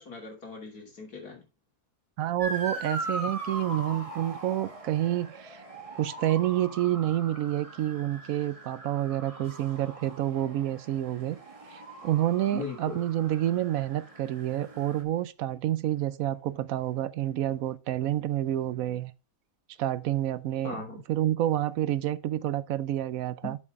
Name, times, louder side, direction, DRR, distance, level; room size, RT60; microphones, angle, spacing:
voice 1, 0.0-1.4 12.5-13.0 20.6-21.0 23.4-23.5, left 4 dB, 85° left, 3.2 m, -39 dB
voice 2, 2.2-5.6 5.9-11.4 11.7-19.1 19.8-20.8 21.1-23.6, right 13 dB, 75° right, 1.0 m, -28 dB
Motor vehicle (road) / Siren, 2.4-15.0, right 2 dB, 25° right, 1.4 m, -41 dB
7.1 x 6.5 x 3.6 m
omnidirectional pair, 1.6 m